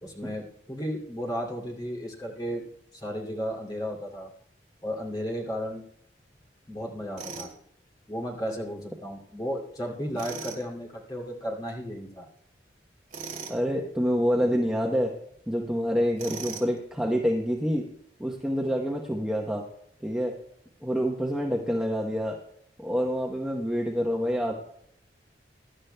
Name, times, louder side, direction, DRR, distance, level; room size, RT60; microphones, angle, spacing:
voice 1, 0.0-2.6 2.9-4.3 4.8-5.8 6.7-7.5 8.1-12.3, equal, 25° left, -2 dB, 2.5 m, -34 dB
Tools, 7.2-7.5 10.2-10.6 13.1-13.6 16.2-16.8, right 5 dB, 45° right, 2.8 m, -38 dB
voice 2, 13.5-15.1 15.5-17.9 18.2-19.6 20.0-20.3 20.8-22.4 22.8-24.5, equal, 5° right, -1 dB, 0.9 m, -27 dB
22.5 x 11.5 x 2.2 m, 0.71 s
head